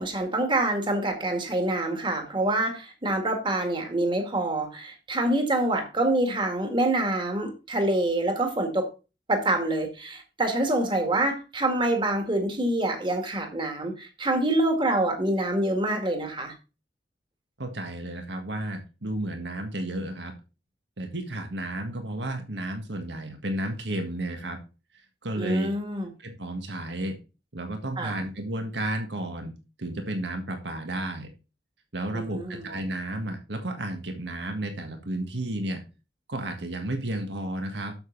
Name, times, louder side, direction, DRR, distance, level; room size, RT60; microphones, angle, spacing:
voice 1, 0.0-8.9 9.3-16.5 25.4-26.1 28.0-28.2 32.1-32.7, right 1 dB, 30° right, 2.0 m, -26 dB
voice 2, 17.6-20.3 21.0-24.6 25.2-25.7 26.2-27.2 27.5-29.5 29.8-31.3 31.9-35.8 36.3-37.9, right 1 dB, 75° right, 1.7 m, -32 dB
8.0 x 7.2 x 3.9 m
head